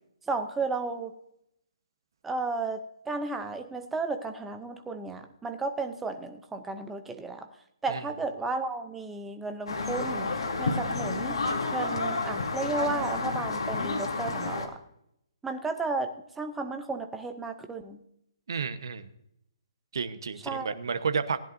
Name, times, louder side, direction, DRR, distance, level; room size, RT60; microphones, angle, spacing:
voice 1, 0.3-1.1 2.2-7.5 7.8-10.3 10.6-11.4 11.7-14.8 15.4-18.0 20.5-20.7, right 3 dB, 5° right, 6 dB, 0.5 m, -33 dB
sound 1, 9.7-14.7, left 3 dB, 75° left, 2.6 m, -30 dB
voice 2, 18.5-19.1 19.9-21.4, right 5 dB, 45° right, 10 dB, 1.0 m, -31 dB
19.0 x 10.5 x 2.6 m, 0.77 s
hypercardioid pair, 180°, 3 cm